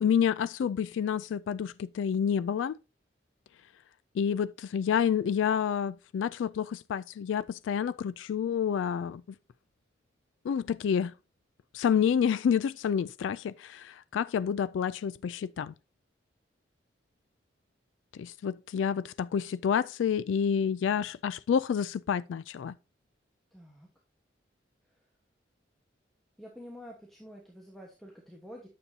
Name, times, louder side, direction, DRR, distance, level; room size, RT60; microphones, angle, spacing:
voice 1, 0.0-2.7 4.2-9.2 10.5-11.1 11.7-15.7 18.2-22.8, left 7 dB, 85° left, 0.3 m, -29 dB
voice 2, 23.5-23.9 26.4-28.7, equal, ahead, 1.2 m, -48 dB
9.6 x 6.9 x 2.7 m
head